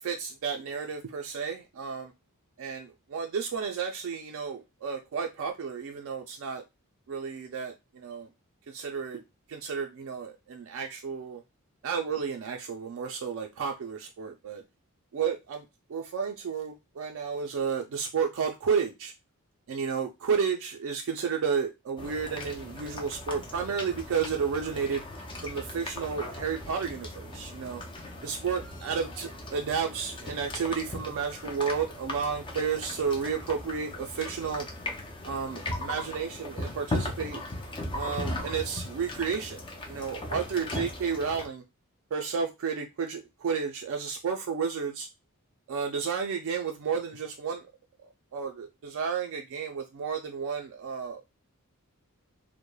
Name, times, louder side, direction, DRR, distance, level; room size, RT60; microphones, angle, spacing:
voice 1, 0.0-2.1 2.6-6.6 7.1-8.3 8.7-9.2 9.5-11.4 11.8-14.6 15.1-15.6 15.9-19.1 19.7-25.0 25.4-27.8 28.2-34.7 35.3-37.4 37.9-39.6 39.9-41.6 42.1-45.1 45.7-47.7 48.0-51.2, right 6 dB, 60° right, 0.3 m, -32 dB
sound 1, 22.0-41.5, left 1 dB, 20° left, 0.4 m, -38 dB
3.0 x 2.0 x 2.2 m
head